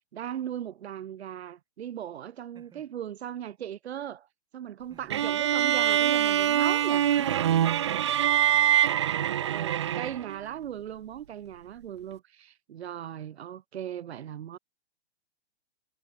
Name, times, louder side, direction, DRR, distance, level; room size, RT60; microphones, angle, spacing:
voice 1, 0.1-4.3 4.5-7.6 9.4-14.6, right 10 dB, 70° right, 1.6 m, -38 dB
voice 2, 2.5-2.9 4.9-5.4 7.5-8.8, right 7 dB, 10° right, 7.6 m, -55 dB
sound 1, 5.1-10.4, right 10 dB, 25° right, 0.4 m, -24 dB
hypercardioid pair, 160°, 34 cm